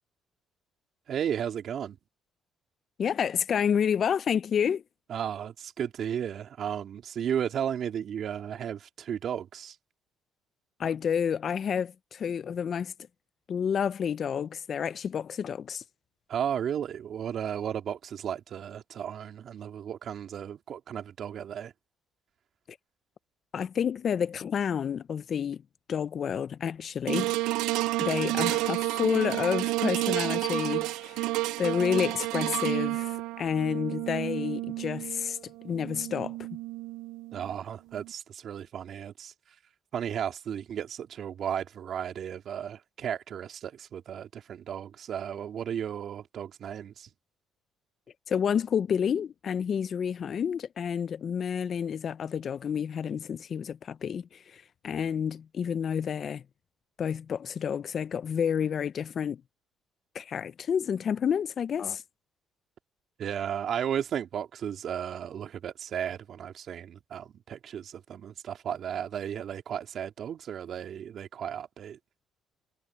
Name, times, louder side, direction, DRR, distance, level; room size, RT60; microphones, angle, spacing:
voice 1, 1.1-2.0 5.1-9.7 16.3-21.7 37.3-39.3 39.9-47.1 63.2-72.0, right 9 dB, 60° right, 3.0 m, -34 dB
voice 2, 3.0-4.8 10.8-12.9 13.5-15.8 22.7-22.8 23.5-25.6 25.9-27.3 28.0-31.3 31.6-35.4 35.6-36.4 48.3-56.4 57.0-59.4 60.1-62.0, left 7 dB, 55° left, 0.6 m, -29 dB
sound 1, 27.1-37.5 38.0-38.1, right 19 dB, 85° right, 0.5 m, -31 dB
supercardioid pair, 75°, 0 cm